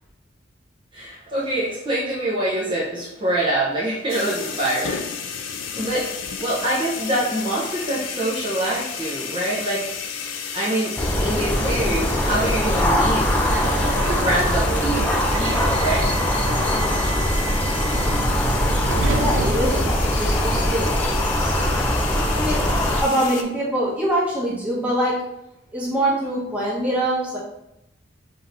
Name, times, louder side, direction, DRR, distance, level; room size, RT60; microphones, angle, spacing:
voice 1, 0.9-5.1 5.7-9.8 10.5-13.3 14.1-15.1 15.3-16.1 16.5-16.6, right 1 dB, 25° right, -9 dB, 0.8 m, -25 dB
sound 1, 4.1-23.4, left 6 dB, 85° left, 0.5 m, -32 dB
sound 2, 11.0-23.0, equal, 10° left, 0.4 m, -22 dB
Subway metro underground, 12.9-20.5, right 2 dB, 85° right, 0.5 m, -29 dB
voice 2, 19.1-21.7 22.3-25.2 25.7-27.4, right 1 dB, 5° right, -7 dB, 1.1 m, -24 dB
5.2 x 2.8 x 2.6 m, 0.88 s
head